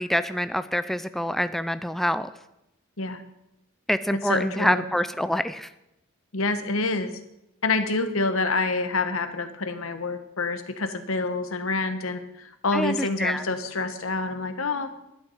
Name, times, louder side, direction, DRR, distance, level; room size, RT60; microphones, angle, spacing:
voice 1, 0.0-2.3 3.9-5.7 12.7-13.4, equal, ahead, 12 dB, 0.3 m, -26 dB
voice 2, 4.1-4.8 6.3-7.1 7.6-14.9, left 3 dB, 85° left, 9 dB, 1.2 m, -27 dB
11.5 x 11.0 x 5.6 m, 0.88 s
head